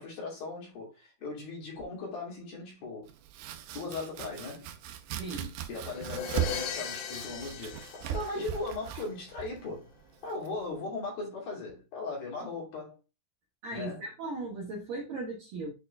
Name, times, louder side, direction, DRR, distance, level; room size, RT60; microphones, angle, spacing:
voice 1, 0.0-3.1 3.8-4.7 5.7-7.9 8.1-9.9 10.2-13.0 13.7-14.0, left 3 dB, 50° left, 3.9 m, -38 dB
Domestic sounds home sounds, 3.1-10.8, right 11 dB, 90° right, 2.4 m, -39 dB
voice 2, 5.2-5.6 13.6-15.7, right 2 dB, 65° right, 2.2 m, -37 dB
sound 1, 6.0-8.9, left 8 dB, 90° left, 4.2 m, -38 dB
9.4 x 4.5 x 2.3 m
omnidirectional pair, 5.8 m